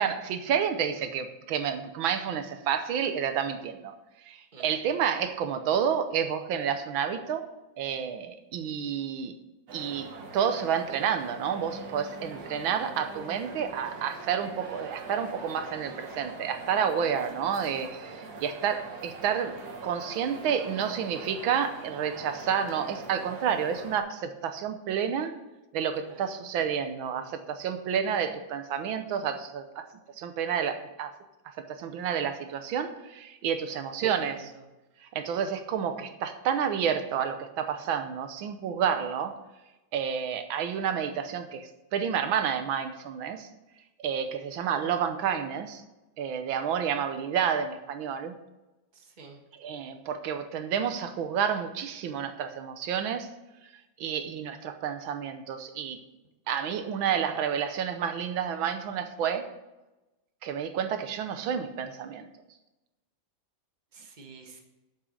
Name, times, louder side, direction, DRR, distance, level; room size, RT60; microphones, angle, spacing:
voice 1, 0.0-3.9 4.3-7.4 7.8-9.3 9.7-19.5 19.8-25.3 25.7-29.9 30.2-31.1 31.4-34.5 35.1-39.3 39.9-43.5 44.0-45.8 46.2-48.3 49.6-53.3 54.0-56.0 56.5-59.4 60.4-62.3, right 8 dB, 85° right, 8 dB, 1.7 m, -30 dB
sound 1, 9.7-24.0, right 3 dB, 55° right, 1.9 m, -43 dB
voice 2, 26.0-26.4 33.7-34.6 48.9-49.4 63.9-64.6, right 4 dB, 25° right, 2 dB, 1.4 m, -49 dB
8.7 x 7.3 x 6.5 m, 1.0 s
omnidirectional pair, 2.1 m